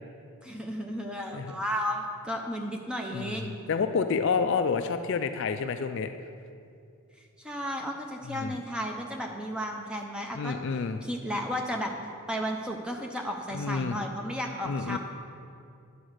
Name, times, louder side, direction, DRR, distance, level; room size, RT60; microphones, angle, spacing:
voice 1, 0.4-3.6 7.4-10.5 11.0-11.9 12.3-15.0, equal, 5° right, 1 dB, 0.7 m, -33 dB
voice 2, 3.1-6.1 8.2-8.6 10.3-11.0 13.5-14.0 14.7-15.0, left 5 dB, 55° left, 9 dB, 0.3 m, -29 dB
10.0 x 5.0 x 6.4 m, 2.5 s
head